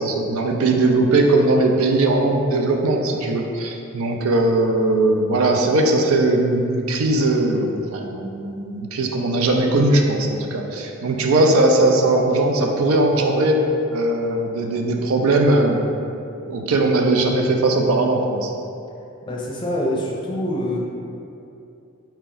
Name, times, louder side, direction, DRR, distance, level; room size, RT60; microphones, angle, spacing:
voice 1, 0.0-13.6 13.9-15.8 16.5-18.5, right 2 dB, 85° right, 2 dB, 0.5 m, -19 dB
voice 2, 19.3-20.8, left 1 dB, 20° left, -3 dB, 0.5 m, -25 dB
4.4 x 2.9 x 3.8 m, 2.7 s
head